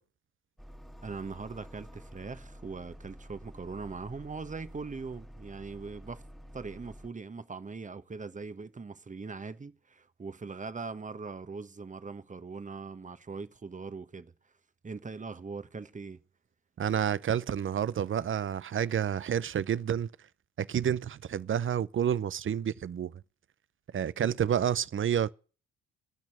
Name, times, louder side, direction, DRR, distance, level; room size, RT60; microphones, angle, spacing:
sound 1, 0.6-7.1, equal, ahead, 1.9 m, -49 dB
voice 1, 1.0-6.2 6.5-14.3 14.8-16.2, right 4 dB, 20° right, 1.2 m, -41 dB
voice 2, 16.8-20.1 20.6-23.1 23.9-25.3, right 9 dB, 35° right, 0.7 m, -29 dB
18.0 x 6.1 x 8.6 m
hypercardioid pair, 50°, 33 cm